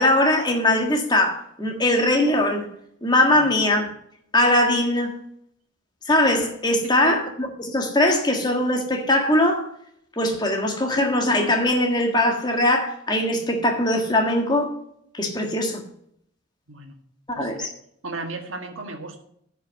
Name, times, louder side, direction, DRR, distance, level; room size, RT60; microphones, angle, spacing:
voice 1, 0.0-2.7 3.0-3.8 4.3-5.2 6.0-9.7 10.2-14.7 15.1-15.8 17.3-17.7, left 1 dB, 20° left, 3 dB, 1.5 m, -21 dB
voice 2, 17.3-17.7 18.0-19.2, right 3 dB, 85° right, 5 dB, 1.7 m, -35 dB
10.5 x 5.5 x 6.9 m, 0.70 s
head